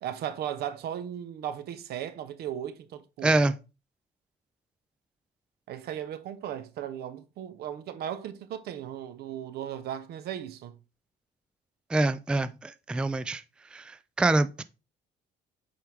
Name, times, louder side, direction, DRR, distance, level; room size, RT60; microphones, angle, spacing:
voice 1, 0.0-3.4 5.7-10.8, right 10 dB, 70° right, 0.9 m, -36 dB
voice 2, 3.2-3.5 11.9-13.4 13.7-14.6, right 2 dB, 5° right, 0.3 m, -26 dB
7.8 x 4.8 x 3.5 m
cardioid pair, 110°, 17 cm